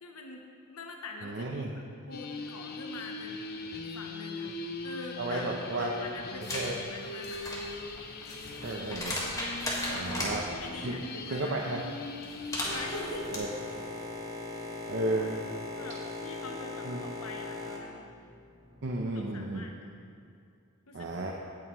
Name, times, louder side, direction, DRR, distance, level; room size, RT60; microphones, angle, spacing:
voice 1, 0.0-4.5 4.8-7.4 9.6-10.2 10.6-11.6 12.7-13.4 14.5-14.9 15.8-18.0 19.1-19.7 20.9-21.1, left 3 dB, 90° left, 2 dB, 0.9 m, -44 dB
voice 2, 1.2-1.7 5.2-5.9 6.5-6.7 8.6-9.2 10.0-10.4 10.8-10.9 11.3-11.8 13.3-13.5 14.9-15.3 16.9-17.0 18.8-19.6 20.9-21.3, right 2 dB, 55° right, 0 dB, 0.7 m, -33 dB
sound 1, 2.1-12.8, left 3 dB, 45° left, 0.7 m, -40 dB
sound 2, 6.4-6.7 7.1-10.3 12.2-13.4, left 1 dB, 15° left, 1.7 m, -35 dB
Boat Water vehicle, 12.6-19.0, left 2 dB, 15° right, 1.0 m, -40 dB
17.0 x 7.5 x 3.1 m, 2.4 s
head